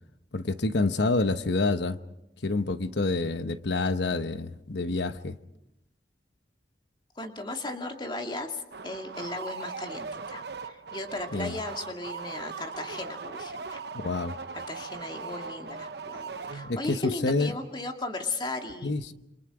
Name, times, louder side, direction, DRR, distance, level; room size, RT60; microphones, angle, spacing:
voice 1, 0.3-2.0 2.4-5.4 11.3-11.6 13.9-14.3 16.6-17.5 18.8-19.1, left 3 dB, 80° left, 10 dB, 1.0 m, -27 dB
voice 2, 7.2-13.8 14.5-18.9, left 2 dB, 25° left, 3 dB, 2.3 m, -36 dB
sound 1, 8.7-17.0, right 4 dB, 70° right, 0.9 m, -39 dB
27.5 x 26.5 x 4.9 m, 0.86 s
head